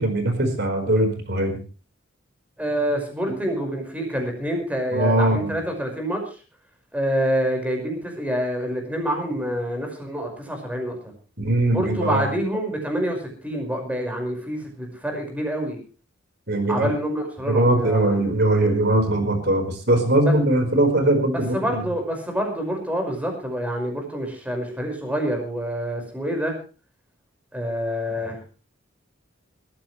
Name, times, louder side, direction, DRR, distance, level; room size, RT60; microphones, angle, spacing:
voice 1, 0.0-1.5 3.3-3.5 4.9-5.6 11.4-12.3 16.5-16.9 17.5-21.9, right 1 dB, 55° right, 7 dB, 4.8 m, -21 dB
voice 2, 2.6-6.2 6.9-11.0 11.7-15.8 16.7-18.2 20.2-20.4 21.5-26.6 27.5-28.4, equal, 5° right, 3 dB, 5.5 m, -27 dB
21.0 x 14.5 x 3.3 m, 0.36 s
head